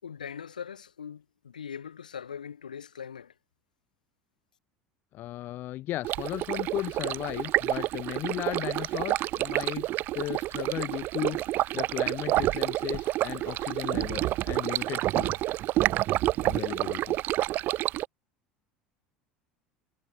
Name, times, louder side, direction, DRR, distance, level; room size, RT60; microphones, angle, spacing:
voice 1, 0.0-3.3, left 7 dB, 90° left, 7.1 m, -41 dB
voice 2, 5.1-9.9 10.1-15.5 16.4-17.2, left 15 dB, 55° left, 2.5 m, -36 dB
Stream, 6.0-18.0, right 16 dB, 55° right, 3.9 m, -29 dB
hypercardioid pair, 75°, 4 cm